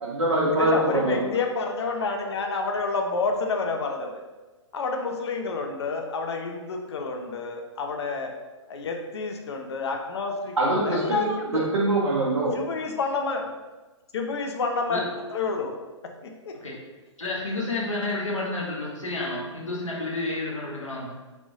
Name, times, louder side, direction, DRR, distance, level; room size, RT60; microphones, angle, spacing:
voice 1, 0.0-1.3 10.6-11.3 11.5-12.5, right 2 dB, 75° right, -5 dB, 0.7 m, -24 dB
voice 2, 0.5-4.2 4.7-8.3 8.7-11.7 12.5-13.5 14.1-15.8 16.0-16.6, left 4 dB, 60° left, 3 dB, 0.5 m, -29 dB
voice 3, 17.2-21.1, left 2 dB, 80° left, -3 dB, 0.8 m, -30 dB
3.3 x 2.5 x 2.6 m, 1.2 s
figure-of-eight pair, 120°, 16 cm